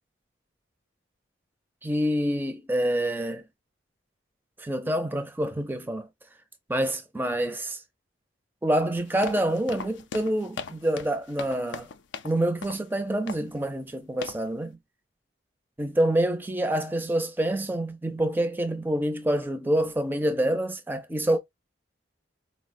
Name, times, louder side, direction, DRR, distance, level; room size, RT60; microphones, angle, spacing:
voice 1, 1.8-3.4 4.6-6.1 6.7-7.8 8.6-11.9 12.2-14.8 15.8-21.4, right 1 dB, 10° right, 0.4 m, -27 dB
sound 1, 9.0-12.4 12.6-12.9 13.3-13.6 14.2-14.5, left 5 dB, 70° left, 0.4 m, -39 dB
4.1 x 2.0 x 2.5 m
head